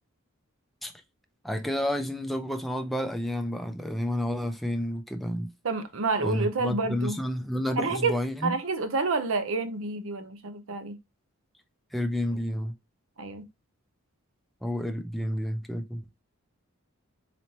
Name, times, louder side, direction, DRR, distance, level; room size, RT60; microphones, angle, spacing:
voice 1, 1.4-5.5 6.2-8.6 11.9-12.7 14.6-16.0, equal, ahead, 0.4 m, -30 dB
voice 2, 5.6-7.2 7.8-8.2 8.4-11.0 13.2-13.4, right 3 dB, 65° right, 0.6 m, -29 dB
4.1 x 3.1 x 2.8 m
head